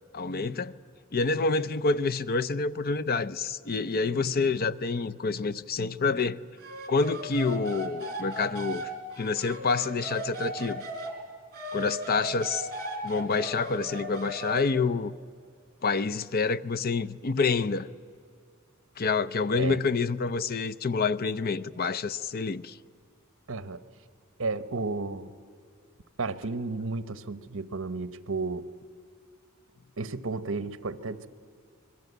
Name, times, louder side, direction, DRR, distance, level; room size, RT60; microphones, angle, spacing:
voice 1, 0.1-0.7 1.1-6.4 6.9-8.9 9.2-10.8 11.7-12.7 13.0-15.1 15.8-17.9 19.0-22.8, left 4 dB, 45° left, 0.6 m, -27 dB
sound 1, 6.6-11.1 11.5-14.7, right 1 dB, 50° right, 3.5 m, -37 dB
voice 2, 23.5-23.8 24.4-25.3 26.2-28.7 30.0-31.3, right 3 dB, 65° right, 1.0 m, -32 dB
25.5 x 21.0 x 8.1 m
head